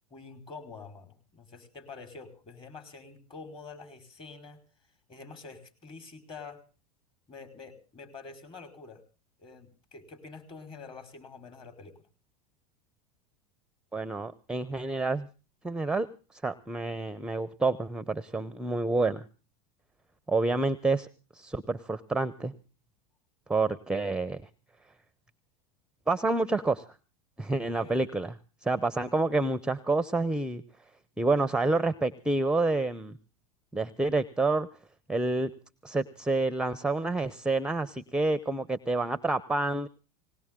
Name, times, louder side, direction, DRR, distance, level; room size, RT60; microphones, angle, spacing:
voice 1, 0.1-4.6 5.1-6.6 7.3-9.0 9.4-12.0 27.8-28.0, left 4 dB, 25° left, 7 dB, 4.6 m, -47 dB
voice 2, 13.9-15.3 15.6-16.1 16.3-19.2 20.3-21.1 21.3-22.5 23.5-24.4 26.1-26.9 27.4-28.3 28.6-30.6 31.2-33.1 33.7-34.7 35.1-35.5 35.8-39.9, right 3 dB, 5° right, 15 dB, 0.7 m, -28 dB
20.0 x 18.0 x 3.7 m, 0.36 s
hypercardioid pair, 105°, 20 cm